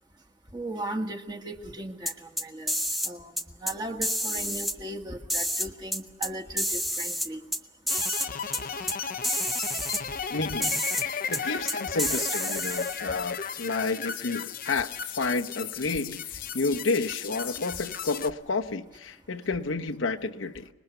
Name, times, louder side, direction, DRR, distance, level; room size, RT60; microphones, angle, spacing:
voice 1, 0.5-2.7 3.0-3.3 3.6-7.4, right 1 dB, 20° right, 1.4 m, -37 dB
sound 1, 2.1-3.1 3.4-3.7 4.0-4.7 5.3-6.3 6.6-7.6 7.9-8.3 8.5-8.6 8.9-9.0 9.2-10.0 10.6-11.0 11.3-11.4 11.7-13.0, equal, ahead, 0.7 m, -29 dB
sound 2, 7.9-18.3, left 6 dB, 45° left, 0.7 m, -35 dB
voice 2, 10.3-20.7, left 3 dB, 80° left, 1.0 m, -31 dB
25.5 x 20.5 x 6.8 m
head